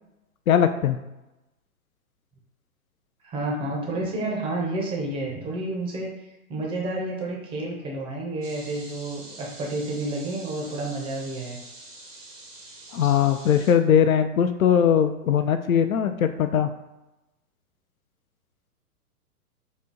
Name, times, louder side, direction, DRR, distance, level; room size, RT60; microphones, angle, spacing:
voice 1, 0.5-1.0 12.9-16.7, left 8 dB, 65° left, 9 dB, 0.5 m, -20 dB
voice 2, 3.2-6.1 6.5-11.6, right 2 dB, 10° right, -2 dB, 0.6 m, -30 dB
sound 1, 8.4-13.7, right 2 dB, 90° right, 1.3 m, -45 dB
4.2 x 2.7 x 3.8 m, 0.98 s
figure-of-eight pair, 115°, 45 cm